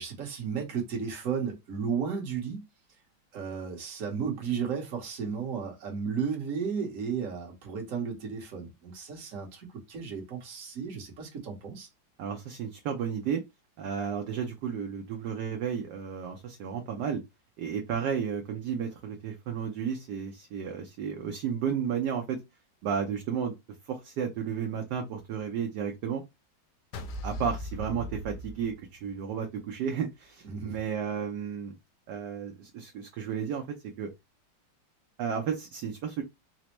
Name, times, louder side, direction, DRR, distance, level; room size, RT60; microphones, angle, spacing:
voice 1, 0.0-2.6 3.3-11.9 30.4-30.8, right 6 dB, 50° right, 1.2 m, -34 dB
voice 2, 12.2-13.4 13.8-17.2 17.6-22.4 22.8-23.5 23.9-26.2 27.2-31.7 32.1-34.1 35.2-36.2, right 7 dB, 70° right, 1.1 m, -33 dB
sound 1, 26.9-29.3, equal, 70° left, 1.1 m, -38 dB
4.2 x 2.0 x 2.9 m
omnidirectional pair, 2.1 m